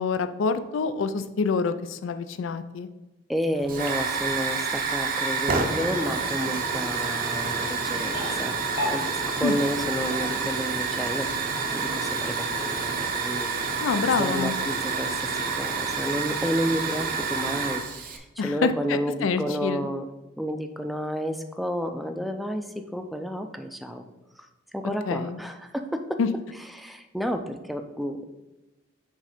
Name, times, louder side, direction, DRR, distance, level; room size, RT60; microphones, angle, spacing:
voice 1, 0.0-2.9 9.4-9.6 13.8-14.6 18.4-19.9 25.1-25.4 26.2-26.3, left 5 dB, 85° left, 10 dB, 0.4 m, -26 dB
voice 2, 3.3-8.6 8.9-11.3 11.7-13.9 14.2-20.0 20.4-24.0 24.7-26.2 26.7-28.2, equal, ahead, 6 dB, 0.4 m, -31 dB
sound 1, 3.5-10.6, left 2 dB, 60° left, 1.7 m, -39 dB
Hiss / Fire, 3.7-18.2, right 4 dB, 45° right, 0.7 m, -28 dB
6.4 x 3.2 x 4.9 m, 1.1 s
head